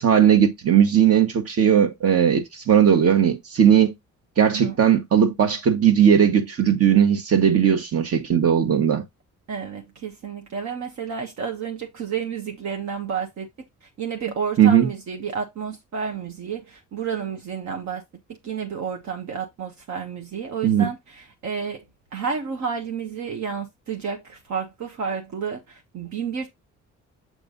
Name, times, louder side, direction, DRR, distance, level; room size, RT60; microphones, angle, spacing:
voice 1, 0.0-3.9 4.4-9.0 14.6-14.9 20.6-20.9, right 8 dB, 50° right, 1.6 m, -18 dB
voice 2, 4.4-4.8 9.5-13.5 14.0-18.0 18.4-21.8 22.1-26.5, right 6 dB, 70° right, 1.3 m, -30 dB
8.0 x 3.3 x 4.0 m
cardioid pair, 90°, 30 cm